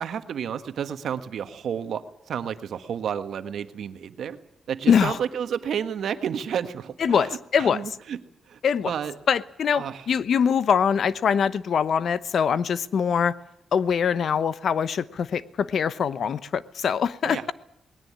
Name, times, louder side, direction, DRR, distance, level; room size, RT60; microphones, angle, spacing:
voice 1, 0.0-4.4 4.7-8.2 8.5-8.6 8.8-9.1 9.7-10.0 17.2-17.5, right 8 dB, 75° right, 10 dB, 1.5 m, -31 dB
voice 2, 4.9-5.2 7.0-7.8 8.6-8.9 9.3-13.3 13.7-17.5, left 7 dB, 65° left, 16 dB, 0.9 m, -23 dB
20.0 x 17.5 x 9.6 m, 0.79 s
wide cardioid pair, 130°, 0 cm